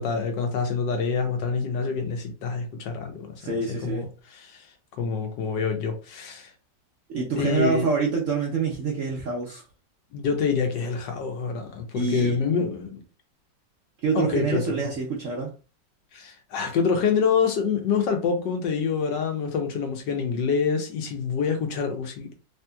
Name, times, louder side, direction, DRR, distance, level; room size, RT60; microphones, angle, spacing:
voice 1, 0.0-3.4 3.7-4.0 4.3-4.6 5.0-6.5 7.4-7.9 10.1-13.0 14.1-14.6 16.1-22.3, left 5 dB, 75° left, 1.3 m, -26 dB
voice 2, 3.4-4.1 7.1-9.6 11.9-12.4 14.0-15.5, right 4 dB, 65° right, 0.8 m, -26 dB
3.4 x 2.9 x 2.2 m
omnidirectional pair, 2.0 m